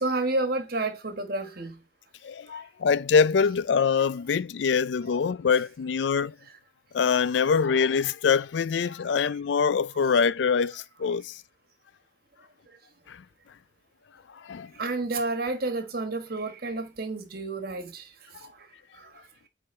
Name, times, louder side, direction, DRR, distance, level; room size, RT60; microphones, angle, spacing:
voice 1, 0.0-1.8 14.8-18.0, right 2 dB, 55° right, 1.3 m, -30 dB
voice 2, 2.2-6.3 6.9-11.4 13.1-13.2 14.3-14.7 18.4-18.5, left 6 dB, 75° left, 0.4 m, -24 dB
8.6 x 3.7 x 4.3 m
head